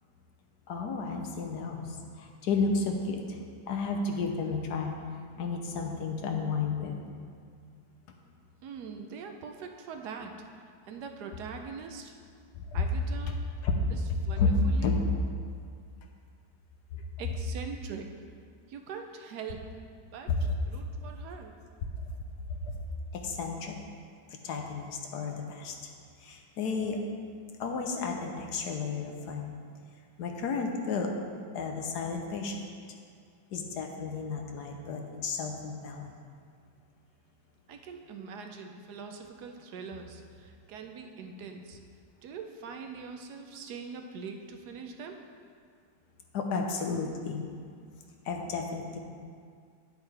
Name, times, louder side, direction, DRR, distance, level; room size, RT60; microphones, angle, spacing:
voice 1, 0.7-3.4 3.7-5.0 5.4-7.0 12.7-12.8 13.6-13.7 14.4-14.5 14.8-15.0 16.9-17.0 20.4-20.5 22.5-22.8 23.1-23.8 24.3-25.7 26.2-27.0 27.6-29.5 30.2-31.1 31.5-32.6 33.5-36.1 46.3-47.5 48.2-49.0, left 4 dB, 70° left, 2 dB, 1.3 m, -32 dB
voice 2, 8.6-12.1 12.7-13.4 13.9-15.0 17.2-18.1 18.7-19.6 20.0-21.6 37.7-41.8 42.2-45.2, right 5 dB, 70° right, 4 dB, 1.2 m, -43 dB
9.7 x 8.1 x 3.4 m, 2.2 s
omnidirectional pair, 1.9 m